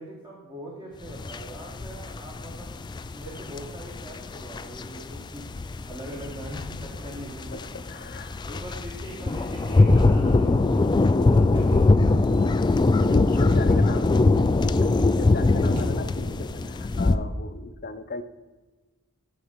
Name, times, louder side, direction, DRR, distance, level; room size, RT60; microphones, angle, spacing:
voice 1, 0.0-2.8 3.1-7.6 8.4-12.5 13.5-14.3, right 1 dB, 15° right, -4 dB, 1.5 m, -41 dB
sound 1, 1.1-17.2, left 2 dB, 20° left, 0.3 m, -22 dB
voice 2, 7.5-8.4 13.1-14.1 14.8-18.2, left 2 dB, 45° left, 9 dB, 0.7 m, -35 dB
Thump thud, 11.5-12.1 13.5-13.9 15.7-16.4, equal, 60° right, 2.1 m, -42 dB
12.5 x 4.2 x 5.1 m, 1.3 s
head